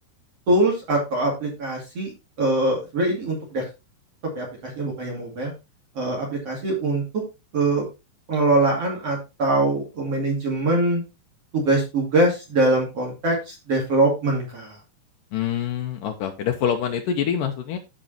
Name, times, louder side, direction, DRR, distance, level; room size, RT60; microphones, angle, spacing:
voice 1, 0.5-2.1 2.4-3.7 4.3-5.5 5.9-7.2 7.5-7.8 8.3-11.0 11.5-14.8, right 2 dB, 40° right, -1 dB, 3.0 m, -23 dB
voice 2, 15.3-17.8, left 8 dB, 90° left, 4 dB, 1.8 m, -25 dB
14.5 x 5.3 x 2.8 m, 0.26 s
omnidirectional pair, 5.0 m